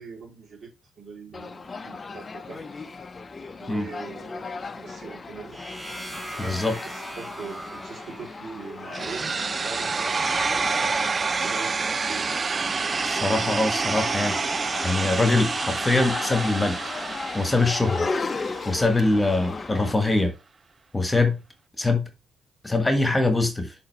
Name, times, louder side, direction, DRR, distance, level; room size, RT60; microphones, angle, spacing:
voice 1, 0.0-2.6 3.6-5.6 6.2-10.3 10.6-12.4, right 4 dB, 60° right, 3.2 m, -41 dB
sound 1, 1.3-19.9, left 4 dB, 35° left, 0.7 m, -36 dB
sound 2, 5.5-9.4, right 1 dB, 5° right, 3.0 m, -40 dB
voice 2, 6.4-6.7 13.0-14.4 14.8-16.8 17.3-18.1 18.7-20.3 20.9-21.4 21.8-22.1 22.6-23.7, left 2 dB, 15° left, 1.5 m, -23 dB
sound 3, 8.9-18.9, right 4 dB, 40° right, 0.4 m, -28 dB
6.6 x 3.8 x 4.6 m
supercardioid pair, 60°, 0 cm